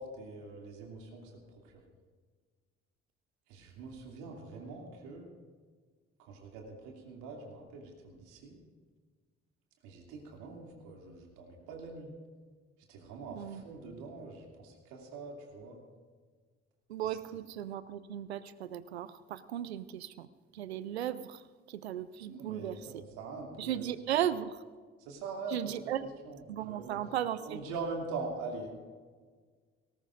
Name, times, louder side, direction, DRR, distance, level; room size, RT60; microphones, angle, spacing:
voice 1, 0.0-1.3 3.5-5.3 6.2-8.6 9.8-12.1 12.9-15.8 22.2-23.8 25.0-25.9 26.2-27.0 27.4-28.8, right 3 dB, 75° right, 0 dB, 2.7 m, -43 dB
voice 2, 13.3-13.6 16.9-20.3 20.5-21.4 21.7-23.0 23.6-24.6 25.5-26.0 26.5-27.6, right 11 dB, 90° right, 15 dB, 0.5 m, -36 dB
19.5 x 18.0 x 2.6 m, 1.5 s
hypercardioid pair, 45°, 31 cm